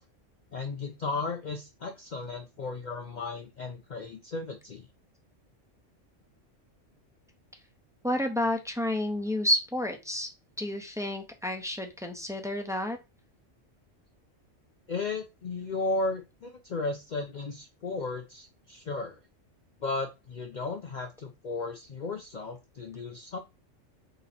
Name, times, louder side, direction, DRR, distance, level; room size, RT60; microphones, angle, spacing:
voice 1, 0.5-4.9 14.9-19.2 19.8-23.4, left 3 dB, 50° left, 3 dB, 0.6 m, -35 dB
voice 2, 8.0-10.3 10.6-13.0, left 1 dB, 5° right, 3 dB, 0.4 m, -30 dB
3.9 x 2.8 x 4.2 m, 0.25 s
omnidirectional pair, 1.3 m